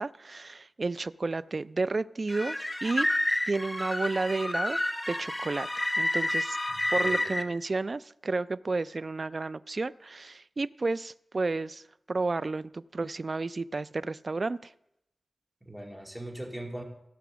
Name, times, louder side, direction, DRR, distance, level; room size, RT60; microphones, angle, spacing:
voice 1, 0.0-3.1 3.5-4.8 5.1-6.6 6.9-11.8 12.1-14.7, right 3 dB, 55° right, 17 dB, 0.3 m, -31 dB
sound 1, 2.3-7.4, left 1 dB, 15° left, 0.9 m, -30 dB
voice 2, 6.7-7.4 15.6-16.8, right 1 dB, 10° right, 0 dB, 2.4 m, -40 dB
16.0 x 5.7 x 6.2 m, 0.81 s
wide cardioid pair, 70°, 0 cm